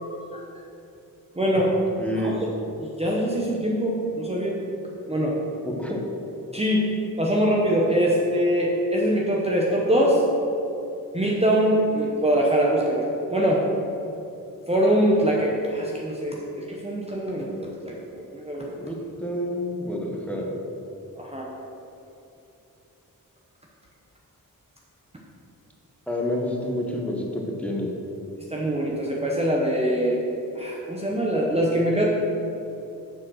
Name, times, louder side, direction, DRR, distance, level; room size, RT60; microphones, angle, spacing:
voice 1, 1.4-1.8 2.1-2.3 2.8-4.6 5.1-5.4 6.5-6.9 7.2-10.2 11.1-13.6 14.7-18.7 21.2-21.5 28.5-30.2 30.6-32.0, equal, 20° right, -3 dB, 0.9 m, -23 dB
voice 2, 2.0-2.4 5.6-6.0 18.6-20.6 26.1-27.9, left 1 dB, 5° left, -1 dB, 1.1 m, -29 dB
7.4 x 6.5 x 6.2 m, 2.9 s
wide cardioid pair, 170°, 35 cm